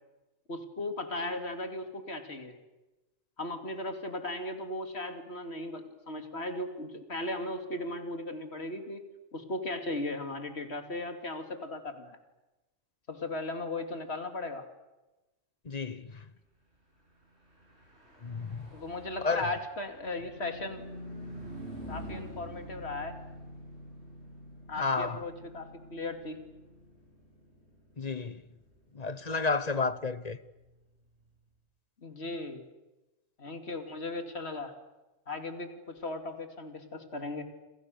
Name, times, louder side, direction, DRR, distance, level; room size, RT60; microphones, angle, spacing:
voice 1, 0.5-2.6 3.4-9.0 9.3-12.2 13.1-14.7 18.7-20.8 21.9-23.2 24.7-26.4 32.0-32.6 33.4-34.7 35.3-37.4, left 2 dB, 60° left, 2.9 m, -37 dB
voice 2, 15.7-16.1 18.2-18.7 19.2-19.5 24.8-25.2 28.0-28.4 28.9-30.4, left 4 dB, 35° left, 1.1 m, -31 dB
Car passing by / Truck, 17.4-31.1, equal, 60° right, 8.5 m, -48 dB
29.0 x 27.5 x 6.7 m
omnidirectional pair, 1.3 m